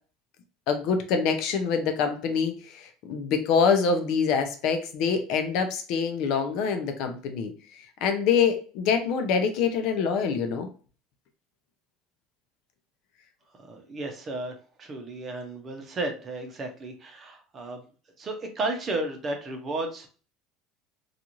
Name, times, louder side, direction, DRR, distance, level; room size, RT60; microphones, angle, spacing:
voice 1, 0.7-10.7, left 6 dB, 65° left, 6 dB, 0.5 m, -25 dB
voice 2, 13.6-17.8 18.2-20.1, right 2 dB, 30° right, 4 dB, 0.7 m, -33 dB
2.5 x 2.4 x 2.9 m, 0.38 s
supercardioid pair, 130°, 0 cm